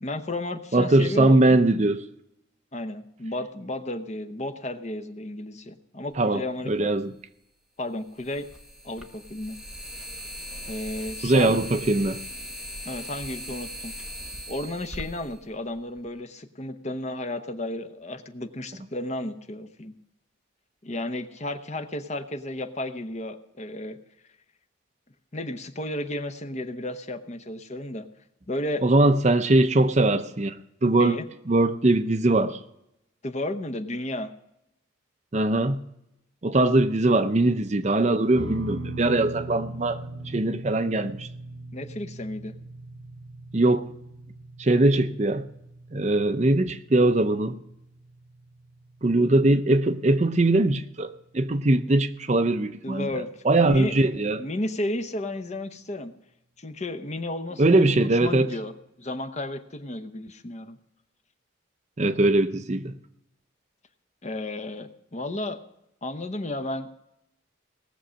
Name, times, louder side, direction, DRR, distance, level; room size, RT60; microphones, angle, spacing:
voice 1, 0.0-1.6 2.7-6.9 7.8-8.5 8.8-9.6 10.7-11.6 12.8-13.9 14.5-19.9 20.8-24.0 25.3-28.1 28.5-28.8 30.8-31.2 33.2-34.3 41.7-42.6 52.8-53.3 53.6-53.9 54.3-56.1 56.6-58.7 59.0-60.8 64.2-65.6 66.0-66.9, left 1 dB, 35° left, 0.8 m, -33 dB
voice 2, 0.7-2.0 6.2-7.1 11.2-12.2 28.8-30.6 30.8-31.2 31.5-32.6 35.3-35.8 36.4-41.3 43.5-43.8 44.6-45.5 45.9-47.6 49.0-51.1 51.3-53.1 53.4-54.4 57.6-58.5 62.0-63.0, right 2 dB, 35° right, 0.6 m, -21 dB
sound 1, 6.7-6.8 8.2-16.1, equal, 5° right, 0.8 m, -39 dB
sound 2, 38.3-50.9, right 2 dB, 85° right, 1.5 m, -40 dB
18.5 x 7.0 x 6.3 m
head